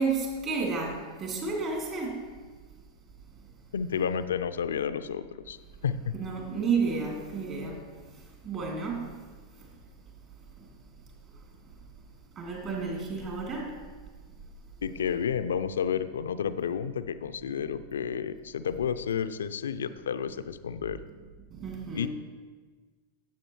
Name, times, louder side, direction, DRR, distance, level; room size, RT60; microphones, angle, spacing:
voice 1, 0.0-2.3 6.1-7.8 8.4-9.2 12.4-13.8 21.5-22.1, right 4 dB, 35° right, 2.8 m, -31 dB
voice 2, 3.7-5.6 5.8-6.2 14.8-21.0 21.9-22.1, left 7 dB, 65° left, 0.5 m, -31 dB
16.5 x 7.5 x 3.1 m
figure-of-eight pair, 90°, 0 cm